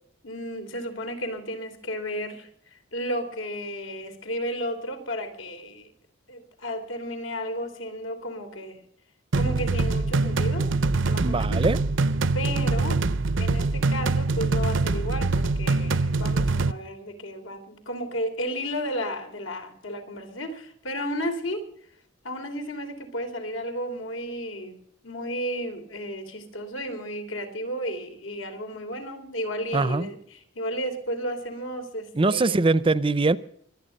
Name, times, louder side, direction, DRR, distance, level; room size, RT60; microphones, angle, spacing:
voice 1, 0.2-5.9 6.3-8.8 9.3-10.7 11.1-11.6 12.3-13.0 13.4-21.7 22.2-24.8 25.0-30.2 30.5-32.6, equal, 90° left, 3.4 m, -33 dB
sound 1, 9.3-16.7, right 3 dB, 70° right, 0.7 m, -24 dB
voice 2, 11.2-11.8 29.7-30.1 32.1-33.4, right 3 dB, 25° right, 0.5 m, -22 dB
25.0 x 9.5 x 5.3 m
head